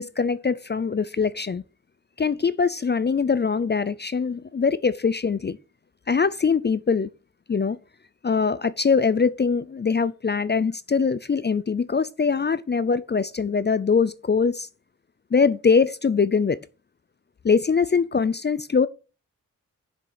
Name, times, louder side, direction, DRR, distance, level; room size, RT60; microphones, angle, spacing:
voice 1, 0.0-1.6 2.2-5.6 6.1-7.1 7.5-7.8 8.2-14.7 15.3-16.6 17.4-18.9, left 5 dB, 35° left, 0.4 m, -22 dB
7.2 x 6.2 x 6.8 m
wide cardioid pair, 100°, 32 cm